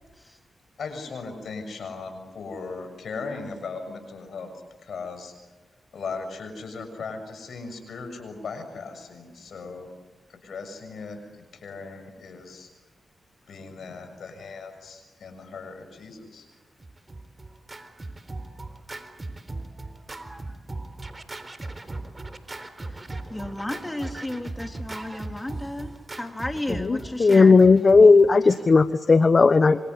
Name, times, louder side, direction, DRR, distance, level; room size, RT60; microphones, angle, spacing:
voice 1, 0.8-4.5 4.8-5.3 5.9-9.9 10.3-11.2 11.6-12.7 13.5-16.5, left 4 dB, 75° left, 8 dB, 6.9 m, -37 dB
Scratching (performance technique), 16.8-28.9, right 2 dB, 35° right, 3.8 m, -38 dB
voice 2, 23.3-27.6, left 1 dB, 15° left, 4 dB, 3.6 m, -33 dB
voice 3, 26.8-29.8, left 4 dB, 50° left, 12 dB, 1.2 m, -16 dB
27.5 x 26.0 x 8.1 m, 1.2 s
supercardioid pair, 40°, 0 cm